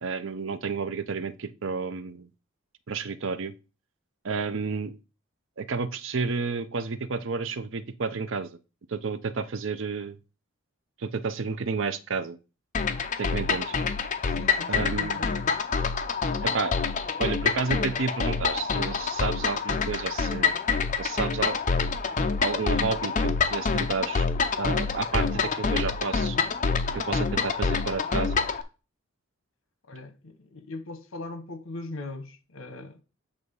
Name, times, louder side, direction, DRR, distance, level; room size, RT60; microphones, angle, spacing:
voice 1, 0.0-2.3 2.9-3.5 4.2-4.9 5.6-8.6 8.9-10.2 11.0-12.4 13.2-13.7 14.7-15.2 16.4-16.7 17.2-20.5 21.0-21.6 22.4-24.3 24.6-26.4 26.9-28.4, right 5 dB, 60° right, 0.6 m, -31 dB
sound 1, 12.7-28.6, left 5 dB, 35° left, 0.7 m, -27 dB
voice 2, 14.2-15.4 29.9-33.0, left 2 dB, 70° left, 1.2 m, -40 dB
8.0 x 3.5 x 5.4 m
head